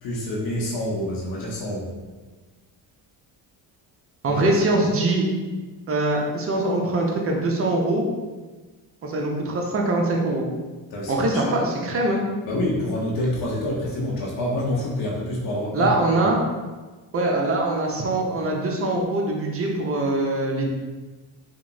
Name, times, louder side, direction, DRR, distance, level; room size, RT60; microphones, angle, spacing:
voice 1, 0.0-1.9 4.3-4.4 10.9-11.6 12.4-15.9 16.2-16.3, left 1 dB, 50° left, -5 dB, 0.7 m, -27 dB
voice 2, 4.2-5.3 5.9-8.0 9.0-10.5 11.1-12.2 15.7-16.4 17.1-20.7, right 2 dB, 30° right, 0 dB, 0.5 m, -23 dB
2.8 x 2.1 x 2.5 m, 1.3 s
cardioid pair, 85°, 47 cm